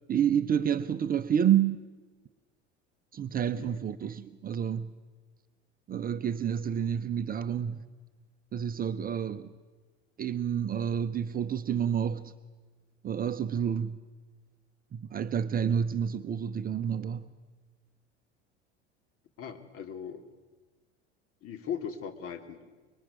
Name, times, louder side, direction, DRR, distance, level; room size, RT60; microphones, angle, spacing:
voice 1, 0.1-1.9 3.1-4.9 5.9-7.8 8.5-9.5 10.2-12.3 13.0-14.0 14.9-17.3, right 8 dB, 25° right, 0.9 m, -29 dB
voice 2, 19.4-20.2 21.4-22.6, left 8 dB, 40° left, 2.9 m, -38 dB
25.5 x 23.0 x 9.5 m
figure-of-eight pair, 75°, 35 cm